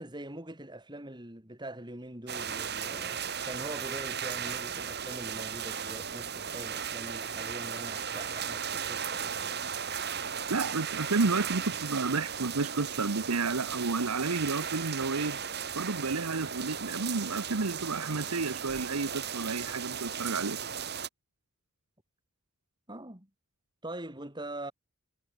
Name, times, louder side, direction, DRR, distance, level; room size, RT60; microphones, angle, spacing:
voice 1, 0.0-9.6 22.9-23.3 23.8-24.7, right 1 dB, 20° right, 3.2 m, -43 dB
sound 1, 2.3-21.1, right 7 dB, 50° right, 2.8 m, -36 dB
voice 2, 10.5-15.4 15.7-20.6, right 3 dB, 85° right, 1.1 m, -31 dB
head